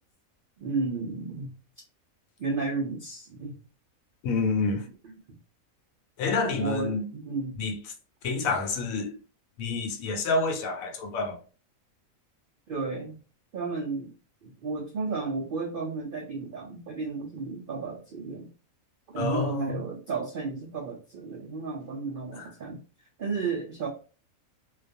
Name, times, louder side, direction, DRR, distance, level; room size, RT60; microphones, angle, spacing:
voice 1, 0.6-1.5 2.4-3.6 5.0-5.4 6.6-7.6 12.7-13.2 13.5-14.1 14.4-18.5 19.1-23.9, right 4 dB, 75° right, 0.5 m, -33 dB
voice 2, 4.2-4.8 6.2-7.1 7.6-7.8 8.2-9.1 9.6-11.4 19.1-19.8 22.4-22.5, left 3 dB, 75° left, 1.0 m, -28 dB
2.3 x 2.3 x 2.5 m
omnidirectional pair, 1.5 m